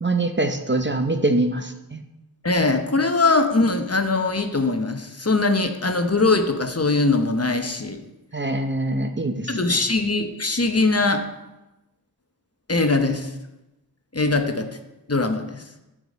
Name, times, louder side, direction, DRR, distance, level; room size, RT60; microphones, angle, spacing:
voice 1, 0.0-2.0 8.3-9.5, right 2 dB, 30° right, 6 dB, 0.7 m, -23 dB
voice 2, 2.4-8.0 9.5-11.2 12.7-13.3 14.1-14.7 15.1-15.6, left 3 dB, 40° left, 6 dB, 0.9 m, -21 dB
10.5 x 5.1 x 5.2 m, 0.97 s
wide cardioid pair, 45°, 39 cm